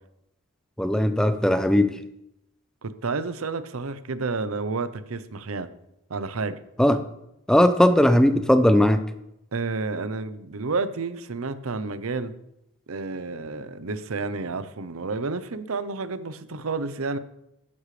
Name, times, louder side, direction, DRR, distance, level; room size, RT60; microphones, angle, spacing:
voice 1, 0.8-1.9 6.8-7.0 7.5-9.0, left 1 dB, 5° left, 0.5 m, -18 dB
voice 2, 2.8-5.7 6.1-6.6 9.5-12.4 12.9-17.2, right 3 dB, 80° right, 0.7 m, -30 dB
12.5 x 10.0 x 3.3 m
head